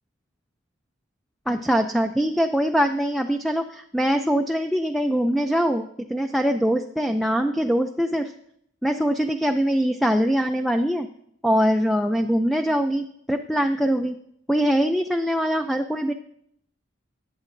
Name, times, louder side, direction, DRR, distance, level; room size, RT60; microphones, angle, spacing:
voice 1, 1.5-5.8 6.1-8.3 8.8-11.1 11.4-14.2 14.5-16.1, equal, ahead, 5 dB, 0.4 m, -23 dB
19.5 x 8.4 x 2.6 m, 0.71 s
head